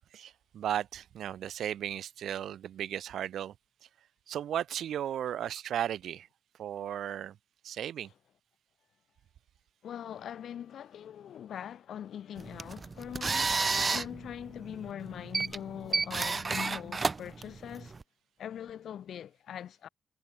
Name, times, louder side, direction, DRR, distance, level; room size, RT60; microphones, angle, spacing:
voice 1, 0.0-3.5 4.3-6.3 6.6-7.4 7.6-8.1, right 10 dB, 85° right, 0.6 m, -35 dB
voice 2, 9.8-13.5 13.9-17.9 18.4-19.9, left 9 dB, 70° left, 2.9 m, -42 dB
sound 1, 12.4-18.0, right 4 dB, 25° right, 0.6 m, -32 dB
wide cardioid pair, 170°, 0 cm